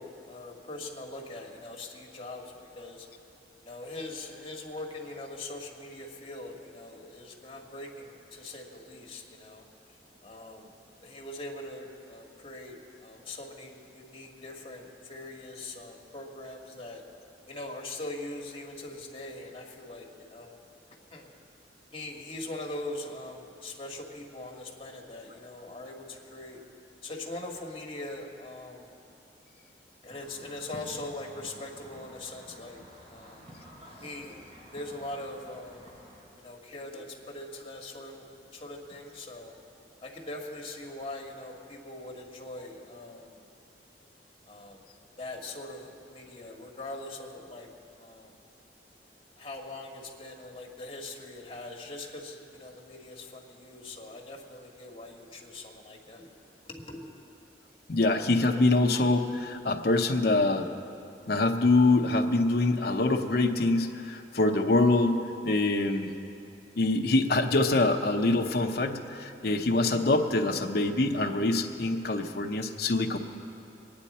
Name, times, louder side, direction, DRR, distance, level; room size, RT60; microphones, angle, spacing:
voice 1, 0.0-3.1 3.6-9.6 10.2-10.7 11.0-17.0 17.5-20.6 21.1-21.3 21.9-26.6 27.0-28.9 30.0-32.8 33.1-33.5 34.0-34.4 34.7-35.9 36.4-39.5 40.0-43.4 44.5-44.8 45.2-47.7 48.0-48.3 49.4-56.3 56.6-57.0, left 2 dB, 30° left, -1 dB, 1.7 m, -42 dB
sound 1, 30.1-36.2, equal, 30° right, 3.1 m, -50 dB
voice 2, 57.9-60.7 61.3-66.1 66.8-73.2, left 2 dB, 60° left, 3 dB, 0.8 m, -25 dB
23.0 x 9.6 x 4.3 m, 2.7 s
head